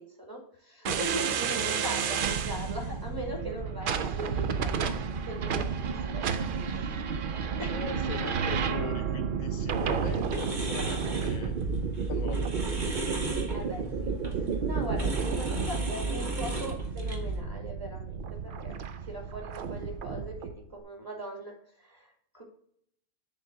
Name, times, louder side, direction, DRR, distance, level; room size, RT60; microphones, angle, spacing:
voice 1, 0.0-6.3 6.7-7.0 7.6-7.9 13.5-18.7 19.1-22.4, right 1 dB, 15° right, -1 dB, 2.3 m, -40 dB
sound 1, 0.8-20.6, right 6 dB, 65° right, 0.5 m, -32 dB
voice 2, 1.7-2.2 6.7-6.8 7.7-11.5 12.1-12.8 15.5-15.6, left 7 dB, 75° left, 9 dB, 1.0 m, -41 dB
sound 2, 9.7-17.4, right 1 dB, 35° right, 1.3 m, -34 dB
7.0 x 3.8 x 6.2 m, 0.65 s
omnidirectional pair, 1.5 m